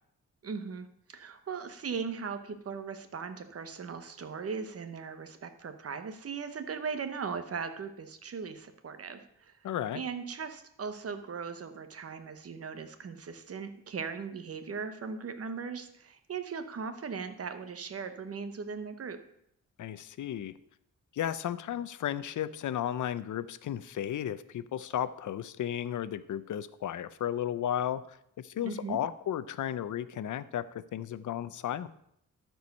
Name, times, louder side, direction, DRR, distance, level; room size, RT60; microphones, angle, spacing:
voice 1, 0.4-9.6 9.9-19.2 28.6-29.0, right 5 dB, 50° right, 9 dB, 0.9 m, -38 dB
voice 2, 9.6-10.0 19.8-20.5 21.1-31.9, left 10 dB, 75° left, 14 dB, 0.6 m, -34 dB
12.5 x 4.7 x 5.3 m, 0.73 s
wide cardioid pair, 130°, 31 cm